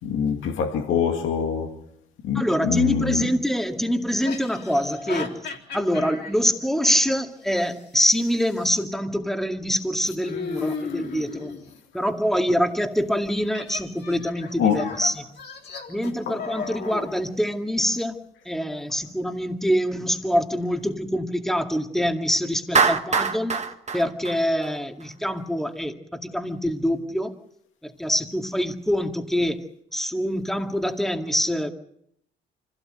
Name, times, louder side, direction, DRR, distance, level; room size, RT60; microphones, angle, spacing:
voice 1, 0.0-1.8 2.2-3.3 14.6-15.0 16.3-16.5, left 7 dB, 85° left, 2.3 m, -24 dB
voice 2, 2.4-5.4 5.7-11.5 11.9-15.2 15.9-23.6 23.9-27.3 27.8-29.6 29.9-31.7, equal, ahead, 2.2 m, -25 dB
sound 1, 2.8-2.9 4.1-6.3 7.6-8.7 10.2-11.7 13.5-17.1, left 5 dB, 60° left, 3.6 m, -36 dB
Clapping, 22.7-25.0, right 5 dB, 35° right, 1.7 m, -23 dB
25.5 x 16.5 x 7.8 m
cardioid pair, 90°, 20 cm